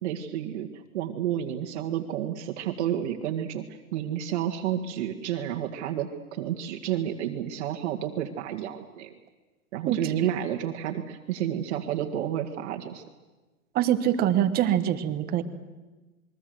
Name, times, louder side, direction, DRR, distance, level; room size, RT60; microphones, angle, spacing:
voice 1, 0.0-3.6 3.9-9.1 9.7-13.0, right 10 dB, 50° right, 2 dB, 1.9 m, -30 dB
voice 2, 13.7-15.4, right 11 dB, 20° right, 10 dB, 1.3 m, -24 dB
27.5 x 22.0 x 7.9 m, 1.2 s
hypercardioid pair, 150°, 44 cm